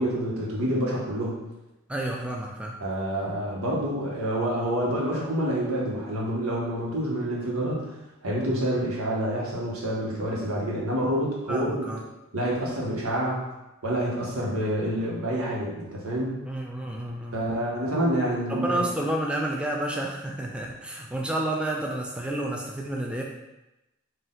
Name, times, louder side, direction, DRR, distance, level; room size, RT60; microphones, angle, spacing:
voice 1, 0.0-1.4 2.8-7.9 8.2-11.9 12.3-13.4 13.8-16.4 17.3-18.9, right 1 dB, 85° right, -4 dB, 1.2 m, -27 dB
voice 2, 1.9-2.8 11.5-12.0 16.5-17.5 18.5-23.2, right 1 dB, 5° right, -1 dB, 0.3 m, -30 dB
4.2 x 2.6 x 3.8 m, 0.97 s
head